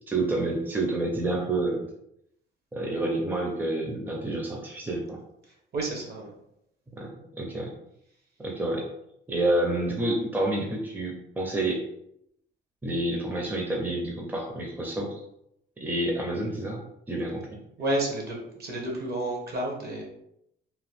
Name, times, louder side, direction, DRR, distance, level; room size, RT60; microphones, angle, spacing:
voice 1, 0.1-1.9 2.7-5.2 7.0-7.7 8.4-8.8 9.3-11.8 12.8-15.2 15.8-17.5, right 2 dB, 10° right, 0 dB, 0.6 m, -29 dB
voice 2, 5.7-6.3 17.8-20.0, right 1 dB, 50° right, -1 dB, 1.1 m, -30 dB
2.9 x 2.2 x 3.3 m, 0.78 s
cardioid pair, 90°, 20 cm